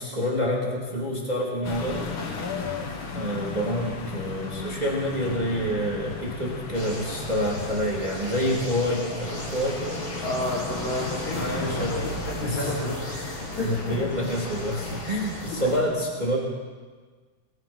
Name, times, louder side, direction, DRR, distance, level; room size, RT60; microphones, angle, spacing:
voice 1, 0.0-2.1 3.1-10.0 11.3-13.3 13.6-16.4, equal, 15° right, -3 dB, 3.2 m, -28 dB
sound 1, 1.6-15.8, left 4 dB, 45° left, 2.3 m, -36 dB
sound 2, 6.7-15.8, equal, 15° left, 3.3 m, -38 dB
voice 2, 10.2-11.9 12.3-13.0 13.5-14.0, left 1 dB, 65° left, -4 dB, 6.4 m, -30 dB
22.0 x 21.0 x 5.7 m, 1.5 s
omnidirectional pair, 3.5 m